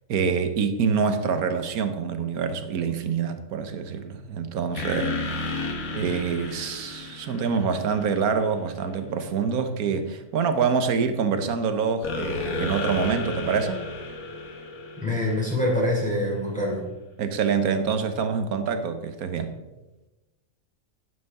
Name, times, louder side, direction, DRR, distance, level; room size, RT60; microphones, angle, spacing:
voice 1, 0.1-5.6 5.9-13.8 17.2-19.5, right 6 dB, 80° right, 9 dB, 1.3 m, -26 dB
sound 1, 4.7-8.4 12.0-16.0, left 2 dB, 70° left, 1.8 m, -32 dB
voice 2, 15.0-16.8, left 1 dB, 5° left, -5 dB, 2.9 m, -25 dB
11.0 x 8.6 x 3.6 m, 1.1 s
omnidirectional pair, 1.6 m